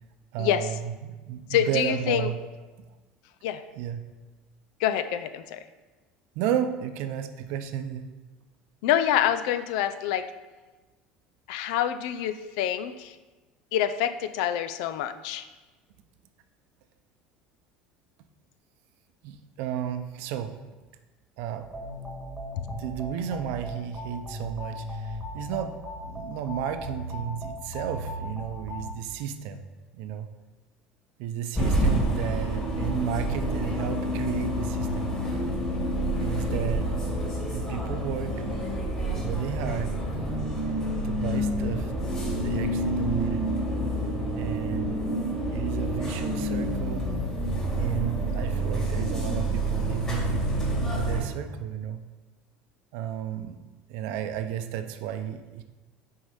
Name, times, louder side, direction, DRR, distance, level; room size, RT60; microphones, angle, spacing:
voice 1, 0.3-2.4 3.8-4.0 6.3-8.1 19.2-20.5 21.4-21.7 22.8-25.8 26.0-29.6 29.9-30.3 31.2-35.1 36.2-36.9 37.5-38.4 39.1-39.9 41.0-41.9 42.3-43.4 44.4-45.1 45.5-47.1 47.8-50.4 50.7-52.0 52.9-53.6 53.9-55.6, right 9 dB, 70° right, 8 dB, 0.7 m, -33 dB
voice 2, 1.5-2.3 3.4-3.6 4.8-5.6 8.8-10.3 11.5-13.2 13.7-15.5, left 10 dB, 80° left, 11 dB, 0.5 m, -26 dB
sound 1, 21.6-28.9, equal, ahead, 1.6 m, -38 dB
sound 2, 31.5-51.2, right 1 dB, 20° left, 2.6 m, -28 dB
6.3 x 4.7 x 5.6 m, 1.2 s
cardioid pair, 135°, 4 cm